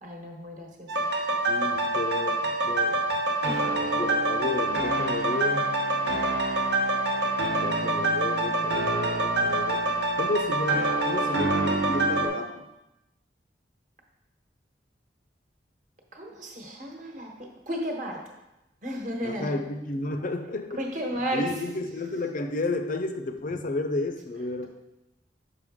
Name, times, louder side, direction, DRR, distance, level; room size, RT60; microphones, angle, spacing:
voice 1, 0.0-0.9 3.4-3.8 16.1-18.3 18.8-19.5 20.7-21.4, equal, 45° right, 1 dB, 1.2 m, -33 dB
sound 1, 0.9-12.3, right 2 dB, 75° right, 0.9 m, -26 dB
voice 2, 1.5-3.0 3.8-5.7 7.5-9.9 10.2-12.7 19.2-20.8 21.3-24.7, left 2 dB, 50° left, 8 dB, 0.5 m, -32 dB
6.6 x 5.5 x 3.6 m, 0.95 s
head